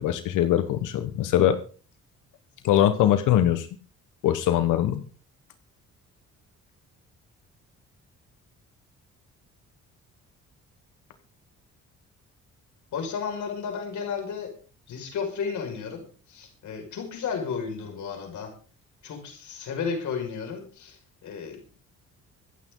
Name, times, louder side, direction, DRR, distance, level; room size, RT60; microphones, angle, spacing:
voice 1, 0.0-1.6 2.6-3.7 4.2-5.0, left 11 dB, 90° left, 9 dB, 1.4 m, -22 dB
voice 2, 12.9-14.5 14.9-18.5 19.0-21.6, left 6 dB, 75° left, 3 dB, 5.8 m, -33 dB
25.5 x 8.6 x 3.9 m, 0.39 s
cardioid pair, 90°, 30 cm